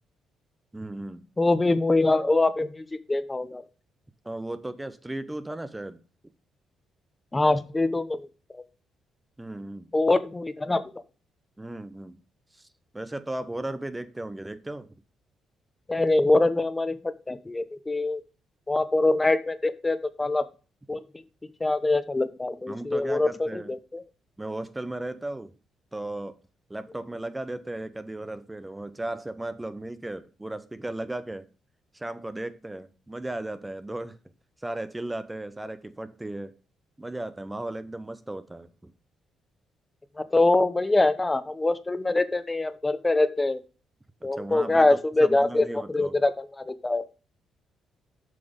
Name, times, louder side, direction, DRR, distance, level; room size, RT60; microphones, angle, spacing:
voice 1, 0.7-1.3 4.2-6.0 9.4-9.9 11.6-12.2 12.5-12.7 12.9-14.9 22.7-23.7 24.4-25.5 25.9-26.4 26.7-31.5 31.9-34.2 34.6-36.6 37.0-38.9 44.2-46.2, right 1 dB, 10° right, 0.7 m, -36 dB
voice 2, 1.4-3.6 7.3-8.3 8.5-8.6 9.9-10.8 15.9-17.0 17.3-18.2 18.7-20.4 20.9-21.0 21.6-24.0 40.3-43.6 44.2-47.0, left 2 dB, 20° left, 0.9 m, -24 dB
7.7 x 5.8 x 5.2 m
cardioid pair, 90°, 0 cm